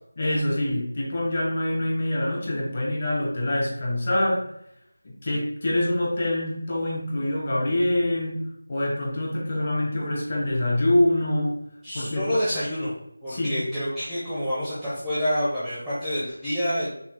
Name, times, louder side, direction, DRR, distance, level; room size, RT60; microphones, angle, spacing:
voice 1, 0.2-4.5 5.0-11.6 11.9-12.6 13.3-13.7, left 1 dB, 30° left, -3 dB, 1.2 m, -25 dB
voice 2, 11.8-12.9 13.2-16.9, equal, 5° left, -13 dB, 0.7 m, -27 dB
5.7 x 2.3 x 3.6 m, 0.77 s
figure-of-eight pair, 175°, 0 cm